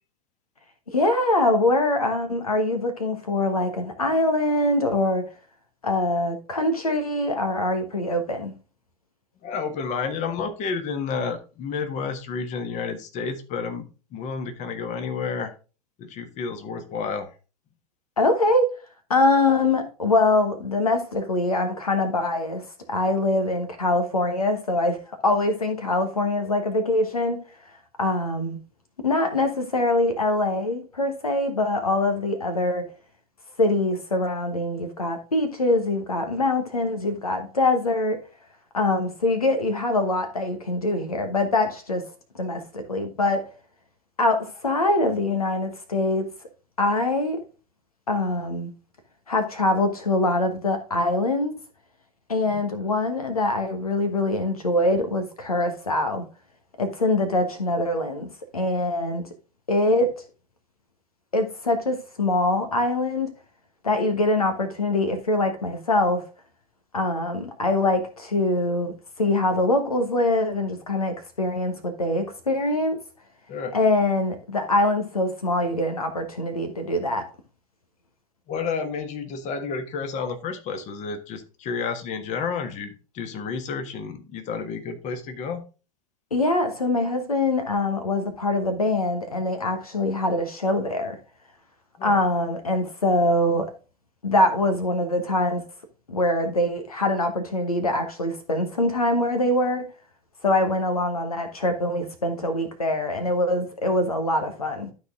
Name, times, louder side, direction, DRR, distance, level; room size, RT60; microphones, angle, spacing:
voice 1, 0.9-5.3 5.8-8.5 18.2-18.7 19.1-27.4 28.0-28.6 29.0-32.8 33.6-38.2 38.7-42.0 42.3-43.4 44.2-46.3 46.8-47.4 48.1-48.7 49.3-51.5 52.3-56.2 56.8-59.2 59.7-60.1 61.3-63.3 63.8-66.2 66.9-73.0 73.7-77.3 86.3-91.2 92.0-93.7 94.2-95.6 96.1-99.8 100.4-104.9, left 2 dB, 85° left, 1.3 m, -23 dB
voice 2, 9.4-13.9 14.1-15.5 16.0-17.3 52.5-52.6 73.5-73.8 78.5-85.6 92.0-92.2, left 5 dB, 40° left, 1.5 m, -30 dB
12.5 x 4.2 x 3.6 m
figure-of-eight pair, 85°, 18 cm